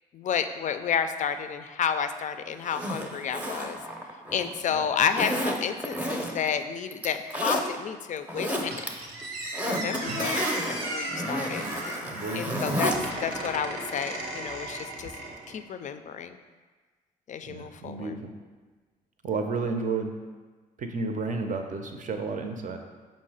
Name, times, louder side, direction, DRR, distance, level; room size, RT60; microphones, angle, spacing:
voice 1, 0.1-3.8 4.3-8.8 9.6-11.6 12.3-12.9 13.2-15.1 15.5-16.4 17.3-18.1, left 7 dB, 45° left, 9 dB, 0.4 m, -30 dB
Zipper (clothing), 2.6-4.6 5.1-6.5 6.9-7.6 8.2-8.9 9.2-13.0 13.3-13.4, equal, 10° right, 0.6 m, -31 dB
Squeak, 8.7-15.6, right 1 dB, 80° right, 0.9 m, -36 dB
voice 2, 12.1-12.8 17.5-18.3 19.2-20.1 20.8-22.8, right 4 dB, 50° right, 5 dB, 0.6 m, -32 dB
5.3 x 2.1 x 4.8 m, 1.4 s
supercardioid pair, 55°, 18 cm